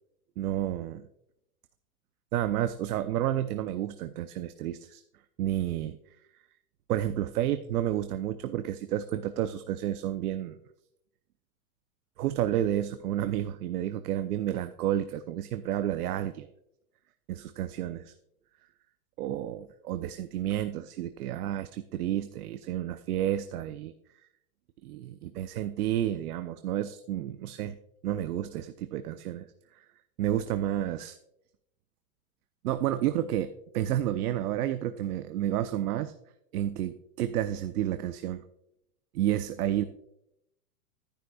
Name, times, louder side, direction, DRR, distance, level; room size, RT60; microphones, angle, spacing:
voice 1, 0.4-1.1 2.3-5.0 5.4-6.0 6.9-10.6 12.2-16.5 17.3-18.1 19.2-23.9 24.8-27.8 28.0-29.5 29.7-29.8 30.2-31.2 32.6-36.1 36.5-38.4 39.1-39.8, right 12 dB, 85° right, 10 dB, 0.7 m, -30 dB
11.5 x 10.0 x 2.3 m, 0.80 s
supercardioid pair, 155°, 44 cm